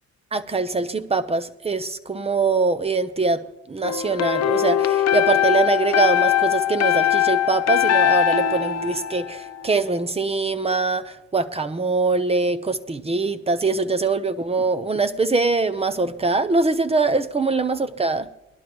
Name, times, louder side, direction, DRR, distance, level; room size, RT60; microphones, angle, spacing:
voice 1, 0.3-18.3, right 3 dB, 20° right, 0.9 m, -23 dB
sound 1, 3.8-9.8, left 10 dB, 55° left, 0.7 m, -21 dB
19.5 x 11.5 x 3.1 m
cardioid pair, 90°, 30 cm